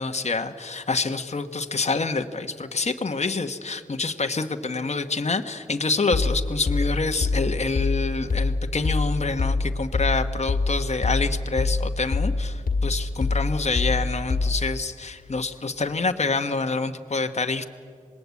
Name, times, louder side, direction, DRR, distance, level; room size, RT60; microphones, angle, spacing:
voice 1, 0.0-17.7, left 3 dB, 50° left, 6 dB, 1.2 m, -27 dB
sound 1, 6.1-14.8, left 3 dB, 80° left, 1.7 m, -25 dB
26.5 x 20.0 x 8.3 m, 2.1 s
cardioid pair, 50°, 15 cm